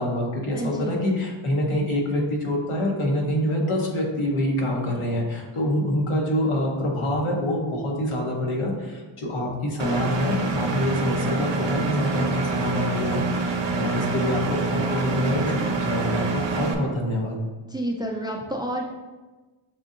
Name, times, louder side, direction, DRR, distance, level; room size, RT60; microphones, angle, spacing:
voice 1, 0.0-17.4, left 1 dB, 80° left, -1 dB, 1.0 m, -26 dB
voice 2, 0.5-1.0 17.6-18.8, right 1 dB, 10° right, 0 dB, 0.3 m, -29 dB
Engine, 9.8-16.7, right 4 dB, 60° right, 0.6 m, -26 dB
6.8 x 2.7 x 2.5 m, 1.2 s
wide cardioid pair, 85°, 50 cm